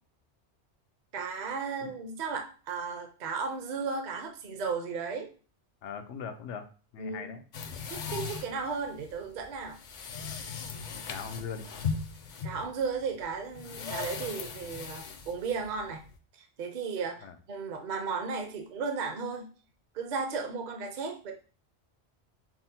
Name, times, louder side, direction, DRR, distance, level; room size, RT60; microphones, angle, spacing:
voice 1, 1.1-5.3 7.0-7.4 7.9-9.8 12.4-16.0 16.4-19.5 19.9-21.3, right 5 dB, 50° right, 3 dB, 0.7 m, -35 dB
voice 2, 5.8-6.7 6.9-7.4 10.9-11.7 17.2-17.4, left 6 dB, 85° left, 8 dB, 0.9 m, -40 dB
sound 1, 7.5-16.2, left 5 dB, 55° left, 0.6 m, -38 dB
5.8 x 2.0 x 2.7 m, 0.37 s
omnidirectional pair, 1.2 m